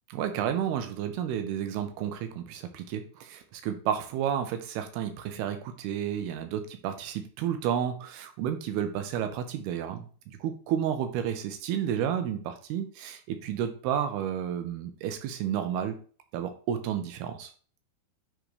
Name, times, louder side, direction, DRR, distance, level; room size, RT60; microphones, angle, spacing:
voice 1, 0.1-16.0 16.3-17.5, right 9 dB, 80° right, 7 dB, 2.8 m, -31 dB
10.0 x 3.8 x 3.2 m, 0.41 s
omnidirectional pair, 4.7 m